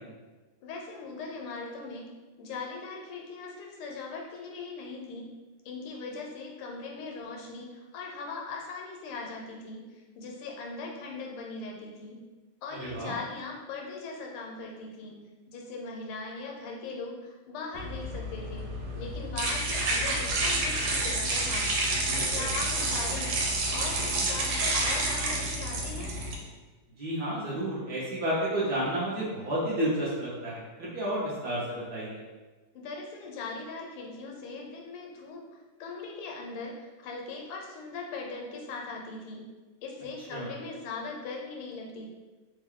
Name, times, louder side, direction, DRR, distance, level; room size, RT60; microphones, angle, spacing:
voice 1, 0.6-2.1 2.4-5.4 5.6-12.3 12.6-15.2 15.5-18.7 19.0-21.7 22.1-26.1 32.7-35.5 35.8-39.5 39.8-42.1, left 3 dB, 80° left, 0 dB, 1.5 m, -40 dB
voice 2, 12.8-13.1 22.1-22.4 27.0-32.2 40.3-40.4, right 1 dB, 65° right, -7 dB, 1.1 m, -31 dB
sound 1, 17.8-26.3, right 2 dB, 80° right, 1.5 m, -29 dB
3.5 x 2.2 x 3.6 m, 1.2 s
omnidirectional pair, 2.4 m